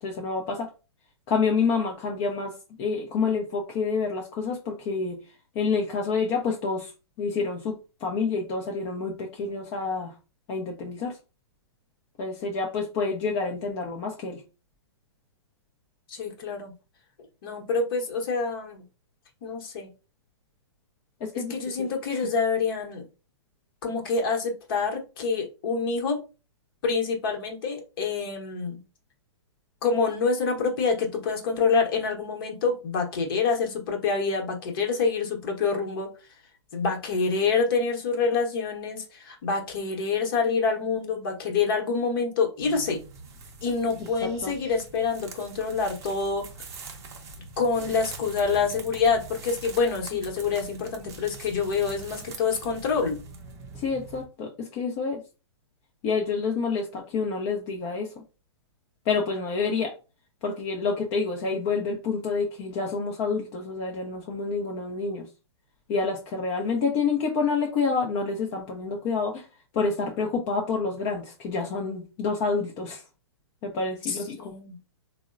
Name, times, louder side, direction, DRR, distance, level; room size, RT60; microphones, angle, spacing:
voice 1, 0.0-0.7 1.3-2.5 2.8-5.2 5.5-6.9 7.2-10.1 10.5-11.2 12.2-14.4 21.2-21.5 21.8-21.9 22.1-22.2 44.2-44.5 53.7-55.2 56.0-58.2 59.1-59.9 60.4-65.2 65.9-69.5 69.7-73.0 73.6-74.5, left 4 dB, 30° left, 2 dB, 0.5 m, -28 dB
voice 2, 16.1-16.7 17.4-18.8 19.4-19.9 21.3-23.1 23.8-26.2 26.8-28.8 29.8-36.1 36.7-43.0 43.6-46.5 47.6-53.2 74.1-74.8, left 5 dB, 50° left, 2 dB, 0.9 m, -26 dB
sound 1, 42.6-54.3, right 3 dB, 20° right, 0.6 m, -43 dB
3.6 x 2.0 x 2.4 m, 0.31 s
hypercardioid pair, 130°, 15 cm